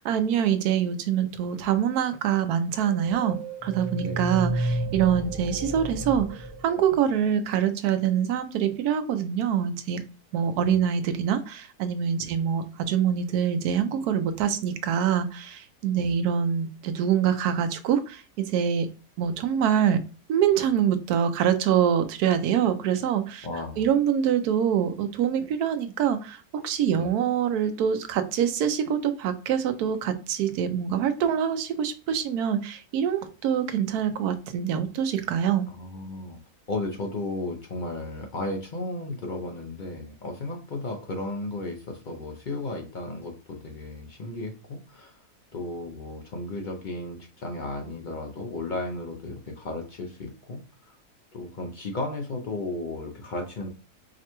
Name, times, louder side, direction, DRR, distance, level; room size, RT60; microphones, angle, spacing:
voice 1, 0.0-10.0 10.3-18.9 19.2-20.0 20.3-23.5 23.8-35.7, right 8 dB, 90° right, 9 dB, 1.1 m, -25 dB
sound 1, 2.7-7.4, right 2 dB, 10° right, 0.5 m, -32 dB
voice 2, 4.0-4.3 10.6-10.8 12.2-12.3 15.9-16.1 23.4-23.9 26.9-27.1 35.7-36.4 36.7-45.2 45.5-51.0 51.3-53.7, left 2 dB, 70° left, 2 dB, 0.4 m, -34 dB
4.8 x 2.1 x 2.9 m, 0.34 s
omnidirectional pair, 1.6 m